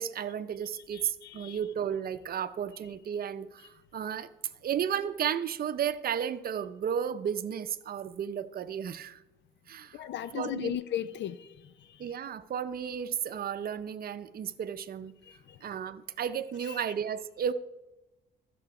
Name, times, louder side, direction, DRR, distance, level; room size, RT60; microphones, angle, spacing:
voice 1, 0.0-4.3 4.6-9.2 9.7-10.0 10.3-10.7 12.0-15.1 15.6-17.5, right 8 dB, 50° right, 0.6 m, -33 dB
voice 2, 0.9-1.6 9.9-12.1 15.3-15.6 16.7-16.8, left 11 dB, 65° left, 0.6 m, -37 dB
14.0 x 6.8 x 4.9 m
cardioid pair, 115°, 20 cm